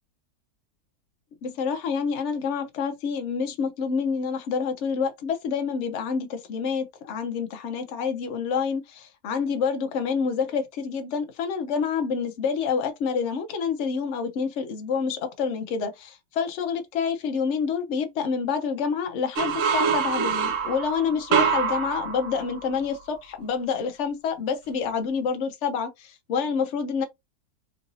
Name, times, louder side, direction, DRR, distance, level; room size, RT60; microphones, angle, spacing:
voice 1, 1.4-27.0, left 6 dB, 55° left, 0.9 m, -28 dB
sound 1, 19.4-23.0, right 6 dB, 65° right, 0.9 m, -25 dB
3.8 x 2.6 x 2.6 m
omnidirectional pair, 1.7 m